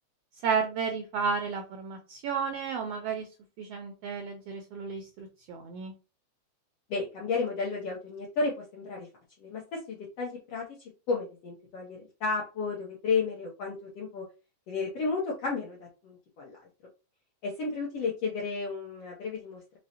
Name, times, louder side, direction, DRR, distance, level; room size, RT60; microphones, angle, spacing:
voice 1, 0.4-3.3 3.6-5.9, right 6 dB, 90° right, 4 dB, 1.4 m, -32 dB
voice 2, 6.9-9.1 9.4-10.6 11.1-14.2 14.7-15.8 16.0-16.6 17.4-19.6, left 4 dB, 75° left, -3 dB, 1.4 m, -32 dB
5.1 x 2.0 x 2.8 m, 0.32 s
omnidirectional pair, 3.5 m